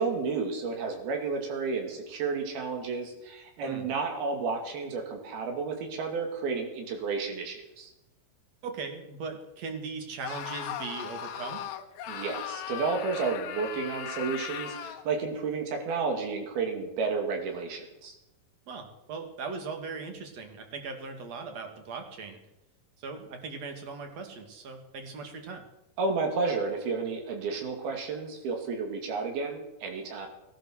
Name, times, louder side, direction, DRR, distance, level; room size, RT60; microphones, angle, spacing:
voice 1, 0.0-7.9 12.1-18.2 26.0-30.3, right 4 dB, 90° right, 3 dB, 4.4 m, -31 dB
voice 2, 8.6-11.6 18.7-22.4 23.0-25.6, right 4 dB, 50° right, 5 dB, 3.0 m, -39 dB
Screaming, 10.2-15.1, left 9 dB, 85° left, 3.1 m, -38 dB
19.0 x 11.5 x 6.3 m, 0.92 s
omnidirectional pair, 4.2 m